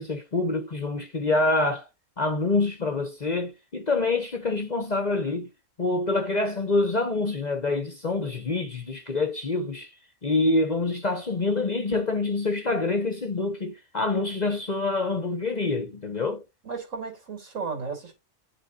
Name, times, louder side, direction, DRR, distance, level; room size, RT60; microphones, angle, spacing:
voice 1, 0.0-1.9 2.2-5.5 5.8-9.9 10.2-16.4, left 3 dB, 35° left, 0.8 m, -26 dB
voice 2, 16.6-18.2, right 5 dB, 70° right, 3.1 m, -34 dB
10.5 x 3.6 x 2.7 m
omnidirectional pair, 1.4 m